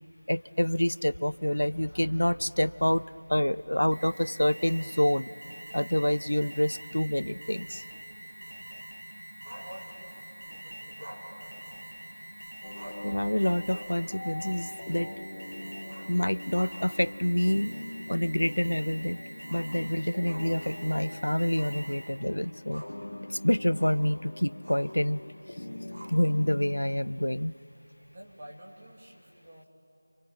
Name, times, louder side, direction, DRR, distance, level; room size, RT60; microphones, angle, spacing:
voice 1, 0.3-3.0 3.3-5.3 5.7-7.8 13.0-15.1 16.1-17.7 18.1-19.2 19.5-22.8 23.3-25.2 26.1-27.6, left 1 dB, 85° left, 19 dB, 0.5 m, -27 dB
Alarm, 3.9-22.3, right 1 dB, 80° right, 2.6 m, -45 dB
Growling, 9.4-10.3 11.0-12.2 12.5-12.6 12.7-13.2 13.6-14.0 14.4-14.5 15.8-17.0 17.4-17.5 18.0-18.1 19.4-21.1 21.5-21.8 22.2-23.1 23.8-24.1 24.6-25.0 25.9-26.5, right 1 dB, 55° right, 6.1 m, -48 dB
voice 2, 9.5-12.5 15.5-15.6 28.1-29.7, right 1 dB, 25° right, -1 dB, 2.7 m, -51 dB
sound 1, 12.6-26.8, left 1 dB, 50° left, 1.1 m, -43 dB
27.0 x 26.0 x 8.2 m, 2.9 s
figure-of-eight pair, 175°, 0 cm